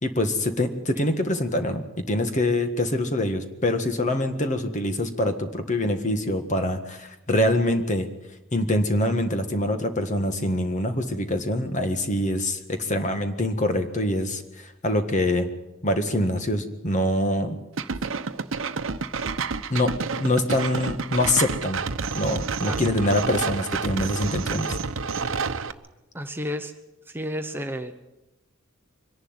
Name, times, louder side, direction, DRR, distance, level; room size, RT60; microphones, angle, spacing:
voice 1, 0.0-8.1 8.5-15.5 15.8-17.6 19.7-21.8 22.1-24.8, left 1 dB, 40° left, 7 dB, 1.7 m, -25 dB
sound 1, 17.8-25.7, right 4 dB, 75° right, 0.9 m, -29 dB
voice 2, 26.1-26.7 27.1-27.9, equal, 10° right, 6 dB, 0.9 m, -32 dB
24.0 x 11.0 x 9.7 m, 0.99 s
head